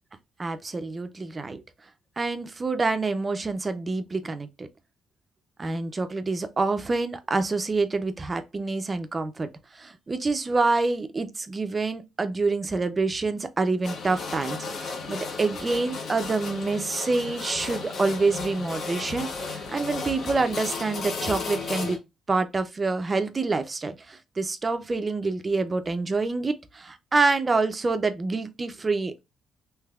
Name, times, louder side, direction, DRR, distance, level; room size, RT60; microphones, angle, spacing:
voice 1, 0.4-1.6 2.2-4.7 5.6-22.0 22.3-29.2, right 3 dB, 30° right, 0.4 m, -27 dB
sound 1, 13.8-22.0, left 4 dB, 60° left, 0.8 m, -34 dB
3.3 x 3.1 x 2.3 m
cardioid pair, 90°, 0 cm